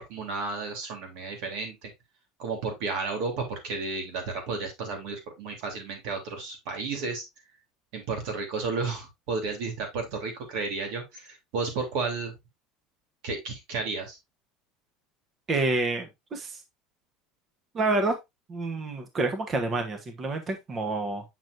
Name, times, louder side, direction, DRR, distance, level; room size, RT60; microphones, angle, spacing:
voice 1, 0.0-1.9 2.4-7.2 7.9-12.3 13.2-14.2, right 4 dB, 70° right, 3 dB, 3.2 m, -32 dB
voice 2, 15.5-16.6 17.7-18.1 18.5-21.2, right 2 dB, 30° right, 6 dB, 1.1 m, -28 dB
7.8 x 6.1 x 2.6 m, 0.20 s
cardioid pair, 140°, 0 cm